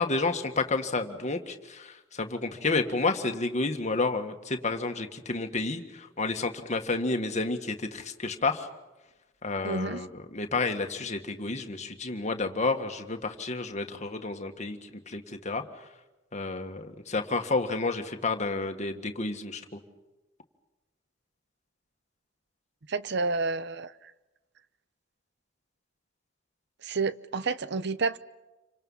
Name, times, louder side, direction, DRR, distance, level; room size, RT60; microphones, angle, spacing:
voice 1, 0.0-8.7 9.4-14.8 15.1-15.6 16.3-19.8, left 3 dB, 40° left, 1.8 m, -30 dB
voice 2, 9.6-10.0 22.9-23.9 26.8-28.2, right 4 dB, 60° right, 0.8 m, -29 dB
28.5 x 25.5 x 5.7 m
head